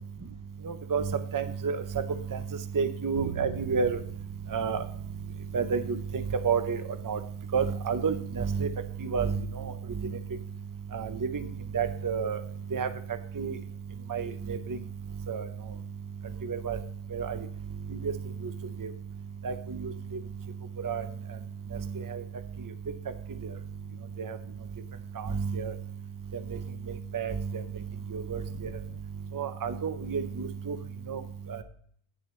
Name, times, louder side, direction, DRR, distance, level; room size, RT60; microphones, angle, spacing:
voice 1, 0.6-1.0 1.3-1.8 2.3-2.4 2.7-4.0 4.5-4.8 5.5-7.2 7.5-8.7 9.0-9.7 10.0-10.1 10.9-11.4 11.7-12.4 12.7-12.9 13.4-13.5 14.1-14.8 15.3-15.5 16.4-16.8 17.1-17.4 18.0-18.1 18.4-18.5 18.8-18.9 19.4-19.9 20.8-21.0 22.1-22.2 24.2-24.4 25.2-25.7 27.1-27.6 28.1-28.4 29.3-30.8 31.1-31.2 31.5-31.6, right 6 dB, 25° right, 9 dB, 0.4 m, -30 dB
Bowed string instrument, 3.2-9.3, right 9 dB, 75° right, 1.0 m, -45 dB
15.5 x 6.3 x 3.2 m, 0.62 s
omnidirectional pair, 1.2 m